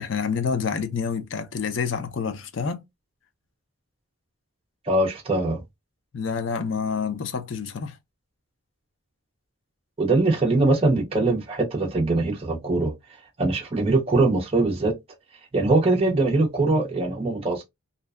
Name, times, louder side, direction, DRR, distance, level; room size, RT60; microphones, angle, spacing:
voice 1, 0.0-2.8 6.1-8.0, left 6 dB, 65° left, 0.4 m, -28 dB
voice 2, 4.9-5.6 10.0-12.9 13.4-14.9 15.5-17.6, right 2 dB, 30° right, 0.5 m, -22 dB
2.6 x 2.1 x 2.2 m
head